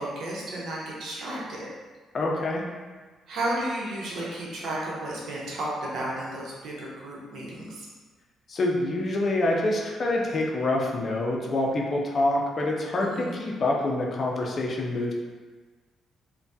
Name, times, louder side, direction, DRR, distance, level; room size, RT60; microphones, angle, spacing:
voice 1, 0.0-1.7 3.3-7.9 13.0-13.4, right 1 dB, 70° right, -5 dB, 0.8 m, -33 dB
voice 2, 2.1-2.6 8.5-15.1, left 2 dB, 45° left, -1 dB, 0.5 m, -26 dB
3.3 x 2.2 x 2.6 m, 1.4 s
cardioid pair, 90°, 0 cm